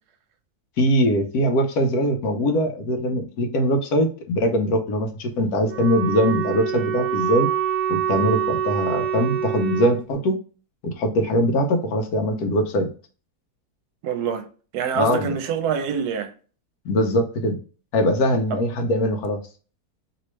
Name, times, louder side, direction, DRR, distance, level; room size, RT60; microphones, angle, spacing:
voice 1, 0.8-7.5 7.9-10.4 10.8-12.9 14.9-15.3 16.8-17.6 17.9-19.4, equal, 75° left, 1.2 m, -22 dB
Wind instrument woodwind instrument, 5.6-10.0, right 9 dB, 60° right, 0.8 m, -25 dB
voice 2, 14.0-14.5 14.7-16.3, right 7 dB, 80° right, 1.1 m, -25 dB
3.1 x 3.0 x 3.0 m
omnidirectional pair, 1.7 m